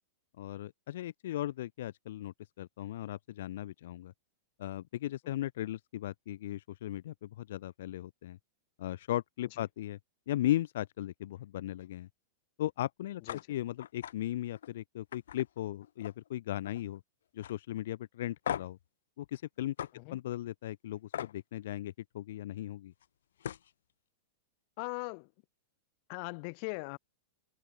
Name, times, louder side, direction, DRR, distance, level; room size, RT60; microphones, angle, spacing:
voice 1, 0.4-4.1 4.6-8.4 8.8-10.0 10.3-12.1 12.6-17.0 17.3-18.8 19.2-19.7 20.1-22.9, left 13 dB, 65° left, 1.7 m, -37 dB
sound 1, 13.3-13.4 13.8-14.1 14.5-14.7 15.1-16.3 16.6-17.0 17.4-17.5 18.4-18.8 19.8-19.9 21.1-21.3 23.0-23.1 23.4-23.7, left 10 dB, 85° left, 1.6 m, -39 dB
voice 2, 24.8-25.3 26.1-27.0, left 37 dB, 45° left, 2.4 m, -39 dB
open air
supercardioid pair, 155°, 0 cm